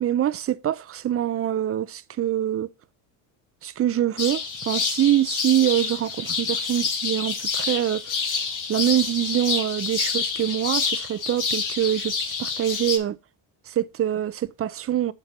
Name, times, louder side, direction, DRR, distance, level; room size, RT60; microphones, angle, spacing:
voice 1, 0.0-2.7 3.6-8.0 8.7-13.2 13.7-15.1, right 12 dB, 30° right, 0.5 m, -24 dB
sound 1, 4.2-13.0, left 5 dB, 40° left, 1.6 m, -28 dB
7.1 x 5.2 x 4.1 m
supercardioid pair, 85°, 47 cm